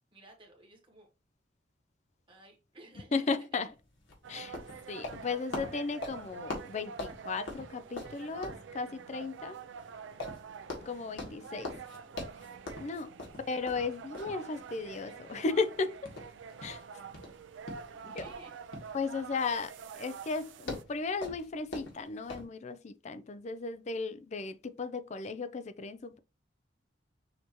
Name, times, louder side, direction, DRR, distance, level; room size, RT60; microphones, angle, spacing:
voice 1, 0.1-1.1 2.3-3.4 11.2-12.2 13.0-13.2 13.5-13.9 17.9-18.6, right 2 dB, 25° right, 1.5 m, -57 dB
voice 2, 3.1-3.7 4.3-4.6 4.9-9.6 10.9-11.7 12.8-13.1 13.5-16.1 16.6-16.8 18.0-18.2 18.9-26.2, left 4 dB, 35° left, 0.4 m, -35 dB
sound 1, 3.6-22.4, left 2 dB, 75° left, 1.7 m, -44 dB
sound 2, 4.2-20.8, right 6 dB, 75° right, 0.4 m, -47 dB
6.4 x 2.8 x 3.0 m
head